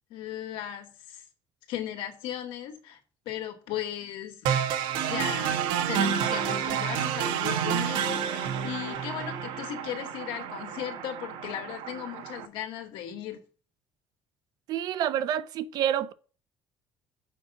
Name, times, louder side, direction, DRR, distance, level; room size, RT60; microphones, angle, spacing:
voice 1, 0.1-1.2 1.7-3.0 3.3-4.6 5.1-13.4, left 11 dB, 85° left, 2.0 m, -37 dB
sound 1, 4.5-12.5, right 8 dB, 85° right, 1.3 m, -29 dB
voice 2, 14.7-16.1, right 10 dB, 55° right, 0.6 m, -28 dB
7.1 x 5.8 x 7.0 m
cardioid pair, 180°, 8 cm